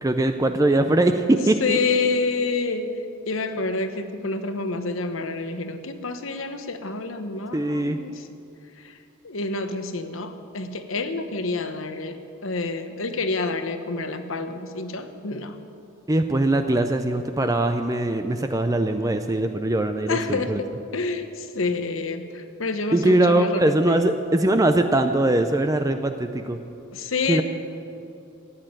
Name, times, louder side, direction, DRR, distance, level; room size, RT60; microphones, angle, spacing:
voice 1, 0.0-1.8 7.5-8.0 16.1-20.6 22.9-26.6 27.3-27.4, right 1 dB, 15° right, 7 dB, 0.6 m, -21 dB
voice 2, 1.6-2.9 3.3-8.3 8.8-9.0 9.2-15.6 19.9-24.0 26.9-27.4, left 3 dB, 80° left, 8 dB, 1.1 m, -28 dB
15.5 x 10.0 x 8.9 m, 2.6 s
head